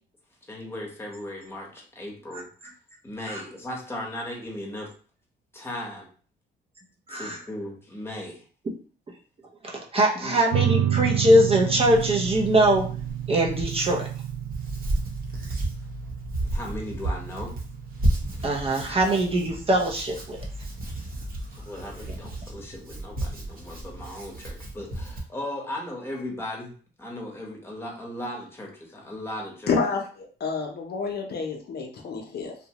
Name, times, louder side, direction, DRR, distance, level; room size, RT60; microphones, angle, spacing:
voice 1, 0.5-2.7 3.0-4.9 5.5-6.1 7.1-8.4 10.2-10.4 16.5-17.5 21.5-26.7 27.0-29.8, left 1 dB, 10° left, -1 dB, 1.0 m, -37 dB
voice 2, 9.6-12.9 13.3-14.1 18.4-20.4, right 1 dB, 30° right, 0 dB, 0.6 m, -22 dB
sound 1, 10.5-21.5, right 11 dB, 75° right, 0.4 m, -31 dB
Hands, 11.2-25.2, right 1 dB, 45° right, 0.9 m, -33 dB
voice 3, 29.7-32.5, left 4 dB, 55° left, 1 dB, 0.7 m, -29 dB
2.8 x 2.1 x 2.9 m, 0.41 s
cardioid pair, 90°, 20 cm